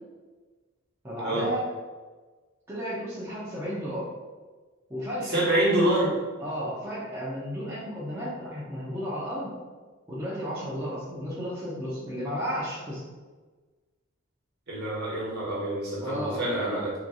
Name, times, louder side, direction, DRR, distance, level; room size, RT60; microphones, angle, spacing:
voice 1, 1.0-1.7 2.7-4.1 4.9-5.4 6.4-9.6 10.1-13.0 16.0-16.4, equal, 10° right, -9 dB, 0.6 m, -33 dB
voice 2, 5.2-6.1 14.7-16.9, right 1 dB, 50° right, -7 dB, 1.3 m, -26 dB
3.8 x 3.2 x 2.3 m, 1.3 s
head